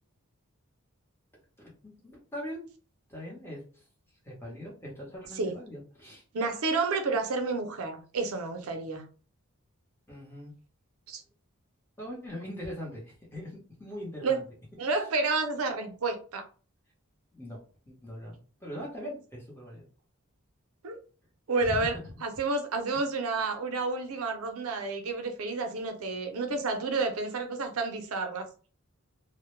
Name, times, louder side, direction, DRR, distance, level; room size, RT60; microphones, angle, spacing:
voice 1, 1.6-2.7 3.1-3.9 4.2-6.2 10.1-10.5 12.0-14.5 17.3-17.6 17.9-19.9 21.6-22.1, equal, 10° left, 0.8 m, -41 dB
voice 2, 6.3-9.0 11.1-11.2 14.2-14.4 14.8-16.4 20.8-21.0 21.5-21.9 22.2-28.5, right 3 dB, 80° right, 0.5 m, -30 dB
2.1 x 2.0 x 3.0 m
head